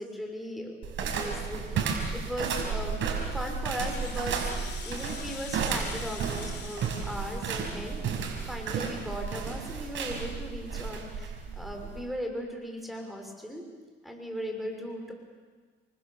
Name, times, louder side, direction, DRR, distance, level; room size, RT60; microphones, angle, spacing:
voice 1, 0.0-3.0 3.3-8.2 8.5-13.6 14.0-15.1, equal, ahead, 1 dB, 6.0 m, -38 dB
sound 1, 0.8-12.1, right 6 dB, 75° right, 5.6 m, -33 dB
Rattle (instrument), 3.7-8.4, left 6 dB, 60° left, 3.5 m, -46 dB
29.5 x 24.5 x 7.3 m, 1.5 s
cardioid pair, 90°, 20 cm